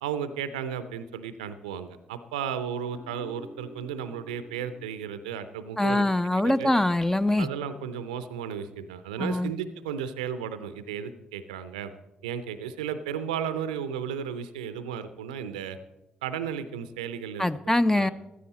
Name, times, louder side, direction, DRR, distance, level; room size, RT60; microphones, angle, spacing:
voice 1, 0.0-6.1 6.4-6.7 7.4-11.9 12.2-15.8 16.2-17.5 17.9-18.1, right 8 dB, 75° right, 13 dB, 0.6 m, -34 dB
Guitar, 2.9-6.2, equal, 65° left, 1.7 m, -49 dB
voice 2, 5.8-7.5 9.2-9.5 17.4-18.1, left 1 dB, 10° left, 13 dB, 0.6 m, -23 dB
15.0 x 13.0 x 4.1 m, 0.98 s
figure-of-eight pair, 40°, 4 cm